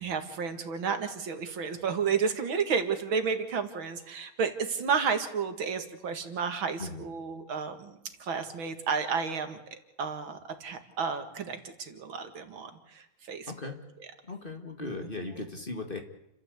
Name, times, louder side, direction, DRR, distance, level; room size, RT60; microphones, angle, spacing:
voice 1, 0.0-9.6 10.0-13.7 14.8-14.9 15.4-15.5, right 6 dB, 75° right, 7 dB, 2.7 m, -32 dB
voice 2, 13.5-13.8 14.2-16.0, left 3 dB, 25° left, 4 dB, 2.2 m, -37 dB
29.5 x 13.5 x 8.3 m, 0.91 s
omnidirectional pair, 2.2 m